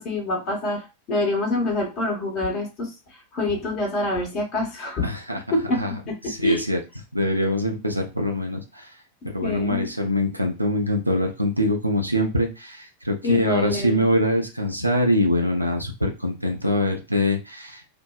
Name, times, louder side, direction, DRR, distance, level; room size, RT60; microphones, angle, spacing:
voice 1, 0.0-5.1 5.5-6.2 6.4-6.6 9.4-9.9 13.2-14.0, left 2 dB, 35° left, 0 dB, 1.0 m, -26 dB
voice 2, 5.0-5.4 5.7-6.0 6.2-6.8 7.1-8.9 9.2-18.0, left 1 dB, 90° right, 2 dB, 0.5 m, -24 dB
2.5 x 2.1 x 2.3 m, 0.27 s
figure-of-eight pair, 90°, 0 cm